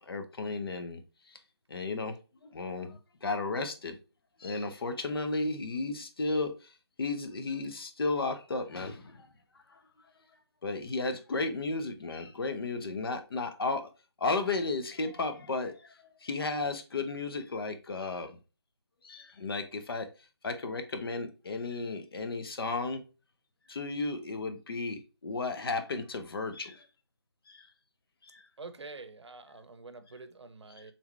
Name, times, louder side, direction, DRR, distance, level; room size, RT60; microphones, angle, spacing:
voice 1, 0.0-1.0 1.3-1.4 1.7-2.2 2.4-4.0 4.4-9.3 9.7-9.8 10.6-13.9 14.2-18.4 19.0-20.1 20.4-23.0 23.7-26.9 27.5-27.7 28.2-28.5, left 3 dB, 55° left, 0.9 m, -34 dB
voice 2, 28.6-30.9, right 3 dB, 80° right, 0.8 m, -47 dB
4.4 x 3.6 x 3.2 m
figure-of-eight pair, 155°, 14 cm